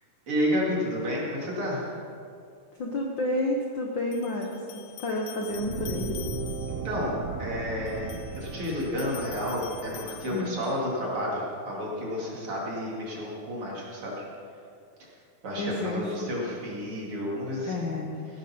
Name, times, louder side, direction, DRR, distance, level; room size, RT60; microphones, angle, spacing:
voice 1, 0.3-2.0 6.7-14.2 15.0-15.1 15.4-17.9, equal, 45° right, -4 dB, 3.2 m, -31 dB
sound 1, 2.8-2.9 4.1-6.9 7.9-10.9, left 13 dB, 80° left, 1.9 m, -46 dB
voice 2, 2.8-4.5 4.7-6.2 10.3-10.5 15.6-16.1 17.6-18.3, left 1 dB, 60° left, 0 dB, 1.2 m, -30 dB
sound 2, 5.3-11.1, left 1 dB, 40° left, 3.6 m, -42 dB
Fire, 5.5-10.7, right 7 dB, 75° right, 1.5 m, -38 dB
16.0 x 12.0 x 4.3 m, 2.4 s
omnidirectional pair, 3.6 m